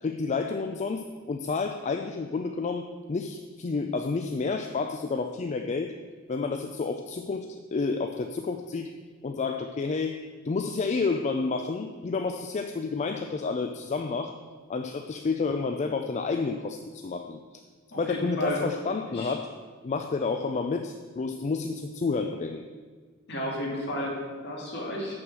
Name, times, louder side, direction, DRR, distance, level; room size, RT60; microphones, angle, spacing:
voice 1, 0.0-5.9 6.3-8.9 9.2-14.4 14.7-17.6 18.0-19.5 19.8-22.6, left 4 dB, 35° left, 6 dB, 0.4 m, -30 dB
voice 2, 17.9-18.6 19.1-19.4 23.3-25.2, equal, 55° left, -2 dB, 2.3 m, -32 dB
6.3 x 6.2 x 7.5 m, 1.5 s
head